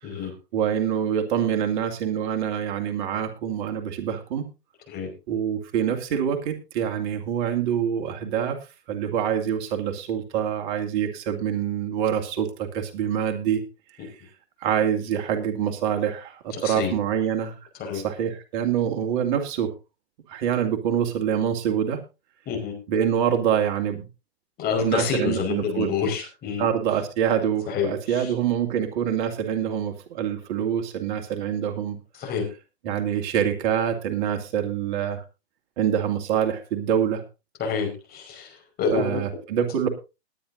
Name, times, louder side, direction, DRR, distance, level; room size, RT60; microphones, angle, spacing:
voice 1, 0.1-4.4 5.3-8.6 8.9-13.6 14.6-17.5 17.9-19.7 20.3-22.0 22.9-24.0 24.8-25.9 26.6-32.0 32.8-35.2 35.8-37.2 38.9-39.9, right 9 dB, 45° right, 4 dB, 2.5 m, -25 dB
voice 2, 16.6-16.9 17.8-18.0 22.5-22.7 24.6-26.6 27.7-28.3 32.2-32.4 37.6-39.2, left 6 dB, 30° left, 3 dB, 5.2 m, -27 dB
20.5 x 10.5 x 2.7 m, 0.28 s
figure-of-eight pair, 110°, 33 cm